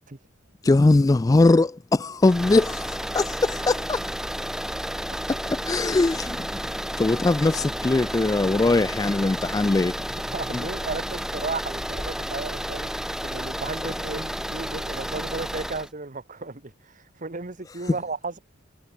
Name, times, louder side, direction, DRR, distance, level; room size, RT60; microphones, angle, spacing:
voice 1, 0.6-4.0 5.5-6.5 7.0-9.9 10.5-10.6, left 2 dB, 20° left, 0.3 m, -21 dB
sound 1, 2.2-15.9, equal, 5° right, 3.8 m, -31 dB
voice 2, 10.3-18.4, right 3 dB, 40° right, 1.2 m, -34 dB
head